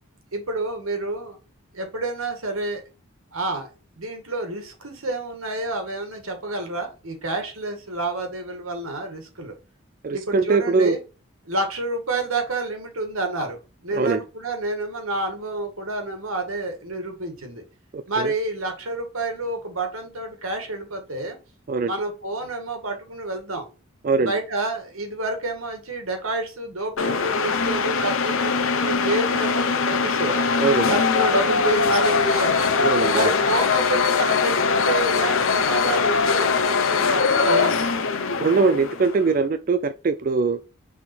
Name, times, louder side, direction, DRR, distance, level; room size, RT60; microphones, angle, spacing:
voice 1, 0.3-1.4 1.7-2.8 3.3-3.7 4.0-9.5 10.1-11.0 11.5-13.6 13.8-17.6 18.1-21.4 21.9-23.7 24.2-30.5 30.9-32.6 33.1-37.7, right 2 dB, 85° right, 1.9 m, -29 dB
voice 2, 10.0-11.0 13.9-14.2 17.9-18.3 21.7-21.9 24.0-24.3 30.6-30.9 32.8-33.3 38.4-40.6, right 4 dB, 40° right, 0.3 m, -21 dB
sound 1, 27.0-39.3, left 5 dB, 80° left, 0.8 m, -21 dB
5.9 x 3.6 x 4.4 m
head